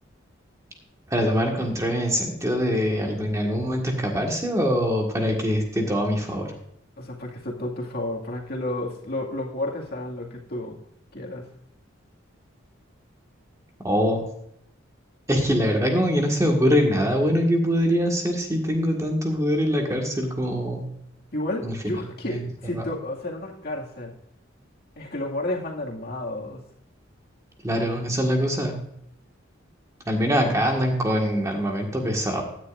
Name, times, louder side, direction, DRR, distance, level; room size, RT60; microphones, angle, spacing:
voice 1, 1.1-6.5 13.8-14.2 15.3-20.9 21.6-21.7 22.3-22.4 22.7-22.8 27.6-28.8 30.1-32.4, equal, 15° right, 1 dB, 1.7 m, -23 dB
voice 2, 7.0-10.8 11.1-11.5 21.3-24.1 25.0-26.6, left 1 dB, 50° left, -1 dB, 2.2 m, -31 dB
16.0 x 10.0 x 2.6 m, 0.73 s
head